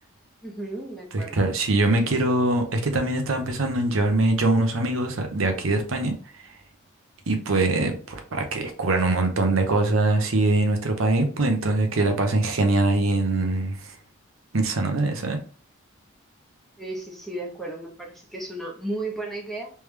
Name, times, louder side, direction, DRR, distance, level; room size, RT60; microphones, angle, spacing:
voice 1, 0.4-1.4 16.8-19.7, right 2 dB, ahead, 0 dB, 0.9 m, -34 dB
voice 2, 1.1-6.1 7.3-13.9 14.5-15.4, right 2 dB, 70° right, 5 dB, 0.8 m, -23 dB
3.3 x 3.3 x 3.2 m, 0.39 s
head